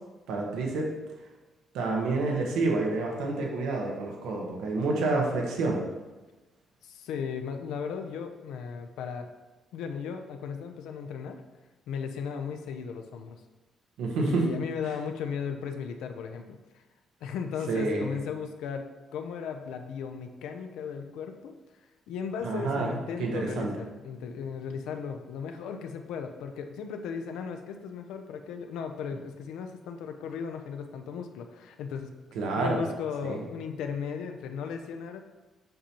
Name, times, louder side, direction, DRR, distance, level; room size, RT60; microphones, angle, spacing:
voice 1, 0.3-0.9 1.7-5.8 14.0-14.4 17.7-18.1 22.4-23.7 32.3-32.8 33.2-33.4, right 3 dB, 90° right, 0 dB, 1.1 m, -28 dB
voice 2, 6.8-9.3 9.7-11.4 11.9-13.4 14.2-16.8 17.2-18.9 19.1-21.5 22.1-32.1 32.5-35.2, left 6 dB, 90° left, 6 dB, 0.6 m, -36 dB
7.6 x 5.5 x 2.9 m, 1.2 s
cardioid pair, 90°, 0 cm